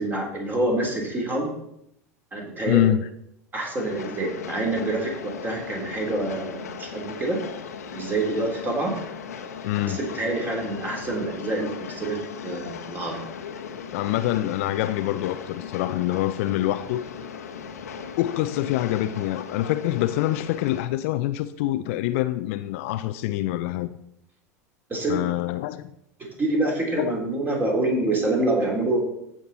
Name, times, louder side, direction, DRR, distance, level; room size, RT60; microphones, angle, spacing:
voice 1, 0.0-1.5 2.3-2.8 3.5-7.4 7.9-9.0 9.9-13.2 24.9-25.3 26.2-29.0, right 2 dB, 20° right, 3.6 m, -26 dB
voice 2, 2.7-3.1 9.6-10.0 13.9-17.0 18.2-23.9 25.1-25.9 27.0-27.1, left 14 dB, 55° left, 0.5 m, -25 dB
Train, 3.8-20.9, left 6 dB, 70° left, 1.1 m, -38 dB
15.0 x 5.9 x 4.2 m
figure-of-eight pair, 80°, 9 cm